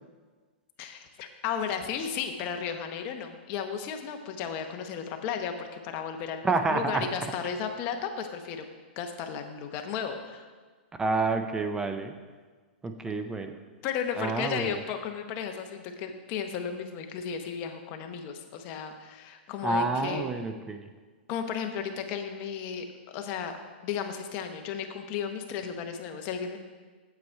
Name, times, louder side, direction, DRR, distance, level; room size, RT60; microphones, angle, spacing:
voice 1, 0.8-8.6 9.0-10.5 13.8-20.3 21.3-22.9 23.1-23.5 23.8-26.6, left 7 dB, 30° left, 5 dB, 0.9 m, -34 dB
voice 2, 6.4-7.1 11.0-12.1 12.8-13.5 14.1-14.7 19.6-20.9, right 3 dB, 10° right, 7 dB, 0.4 m, -28 dB
8.3 x 7.6 x 4.5 m, 1.4 s
hypercardioid pair, 155°, 6 cm